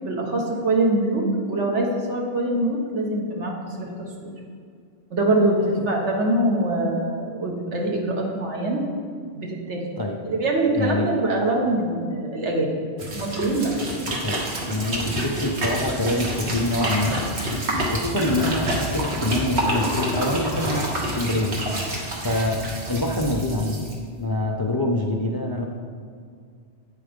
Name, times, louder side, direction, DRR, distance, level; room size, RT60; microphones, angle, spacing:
voice 1, 0.0-4.3 5.1-8.8 9.3-9.8 10.3-12.8 13.1-13.7, right 2 dB, 85° right, 0 dB, 1.5 m, -24 dB
voice 2, 10.7-11.1 13.9-17.1 17.9-21.6 22.2-22.6 22.9-23.9 24.2-25.6, left 1 dB, 30° left, 0 dB, 0.4 m, -25 dB
sound 1, 13.0-23.9, right 1 dB, 70° right, 1.5 m, -28 dB
8.3 x 4.6 x 5.1 m, 2.1 s
omnidirectional pair, 1.2 m